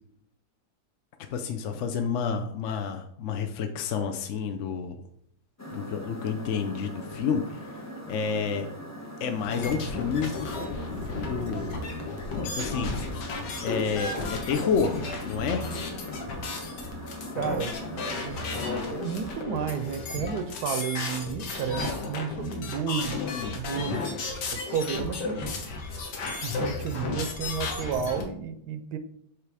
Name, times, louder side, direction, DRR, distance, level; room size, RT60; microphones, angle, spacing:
voice 1, 1.3-5.0 5.7-7.8 8.1-8.7 9.2-10.3 11.2-11.8 12.5-12.9 13.6-15.0 15.3-15.7 23.3-24.0, left 6 dB, 65° left, 6 dB, 0.7 m, -29 dB
sound 1, 5.6-19.4, equal, 25° left, 0.3 m, -41 dB
sound 2, 9.4-28.2, left 3 dB, 80° left, 1.7 m, -34 dB
voice 2, 17.4-17.8 18.2-18.4 18.9-24.0 24.5-25.5 26.4-29.0, right 7 dB, 75° right, 10 dB, 1.1 m, -32 dB
7.4 x 3.2 x 4.8 m, 0.68 s
omnidirectional pair, 1.8 m